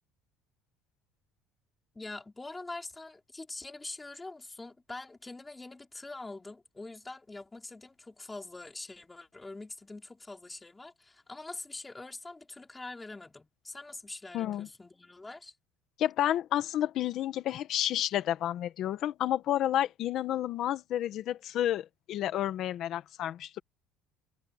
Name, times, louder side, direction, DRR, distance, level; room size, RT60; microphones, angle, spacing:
voice 1, 1.9-15.5, left 2 dB, 10° left, 5.1 m, -44 dB
voice 2, 14.3-14.7 16.0-23.6, left 12 dB, 40° left, 1.6 m, -30 dB
cardioid pair, 180°, 0 cm